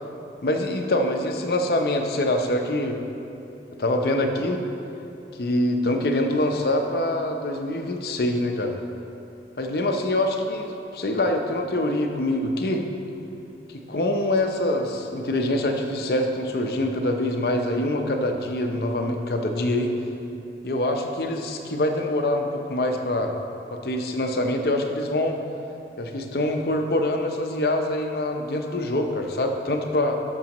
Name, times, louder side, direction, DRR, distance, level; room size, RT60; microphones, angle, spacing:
voice 1, 0.4-3.0 3.8-4.6 5.4-8.8 9.6-12.8 13.7-19.9 20.6-23.3 23.7-25.4 26.0-30.2, left 1 dB, 55° left, 4 dB, 0.7 m, -25 dB
13.0 x 6.1 x 3.0 m, 2.8 s
head